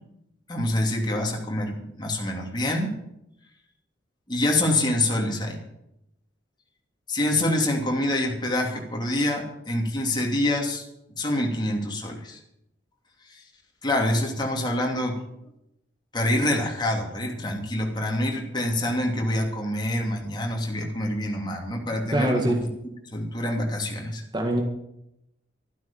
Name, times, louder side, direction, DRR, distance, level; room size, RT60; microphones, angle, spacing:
voice 1, 0.5-2.9 4.3-5.6 7.1-10.8 11.2-12.4 13.3-13.4 13.8-15.2 16.1-22.6 23.1-24.2, left 1 dB, 25° left, 0 dB, 2.9 m, -26 dB
voice 2, 22.1-22.7 24.3-24.6, right 1 dB, 25° right, 2 dB, 1.9 m, -24 dB
13.5 x 12.0 x 7.2 m, 0.82 s
head